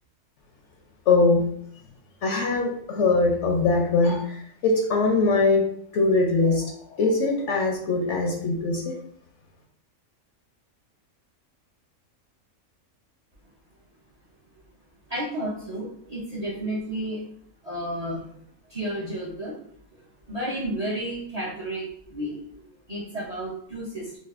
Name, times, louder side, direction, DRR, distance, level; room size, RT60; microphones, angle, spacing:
voice 1, 1.1-1.4 2.2-5.7 5.9-9.0, left 3 dB, 65° left, 1 dB, 0.8 m, -22 dB
voice 2, 15.1-17.2 17.6-18.3 18.7-19.6 20.0-24.2, right 1 dB, 40° right, -5 dB, 0.5 m, -32 dB
4.1 x 2.4 x 2.4 m, 0.64 s
omnidirectional pair, 1.5 m